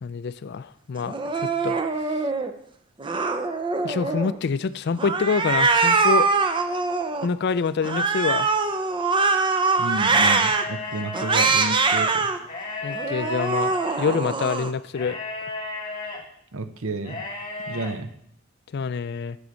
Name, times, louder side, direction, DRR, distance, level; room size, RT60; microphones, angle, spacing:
voice 1, 0.0-1.8 2.1-2.2 3.8-6.3 7.2-8.6 12.8-15.2 18.7-19.4, left 5 dB, 50° left, 15 dB, 0.4 m, -26 dB
Cat, 1.1-2.5 3.0-4.4 5.0-7.3 7.8-10.6 11.1-12.4 12.9-14.7, right 4 dB, 20° right, 0.5 m, -23 dB
voice 2, 9.8-12.3 16.5-17.2 17.7-18.1, right 2 dB, 65° right, 11 dB, 0.7 m, -31 dB
sound 1, 10.2-11.5 12.4-14.1 14.9-16.2 17.0-17.9, left 3 dB, 20° left, 1.7 m, -34 dB
7.9 x 6.3 x 6.9 m, 0.71 s
head